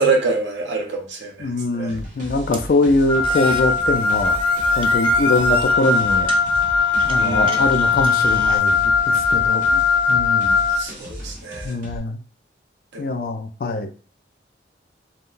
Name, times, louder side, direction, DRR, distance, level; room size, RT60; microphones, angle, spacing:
voice 1, 0.0-2.0 7.2-7.7 10.7-11.8 12.9-13.2, right 3 dB, 80° right, 2 dB, 0.7 m, -25 dB
voice 2, 1.4-4.4 4.8-6.3 7.0-9.8 10.1-10.6 11.6-12.2 13.0-13.9, left 2 dB, 50° left, 7 dB, 0.3 m, -23 dB
sound 1, 1.9-12.0, equal, 45° right, 1.0 m, -36 dB
sound 2, 2.5-8.6, right 3 dB, 30° right, 0.3 m, -35 dB
Wind instrument woodwind instrument, 3.1-10.8, left 4 dB, 5° left, 0.7 m, -19 dB
3.7 x 2.1 x 2.5 m, 0.38 s
head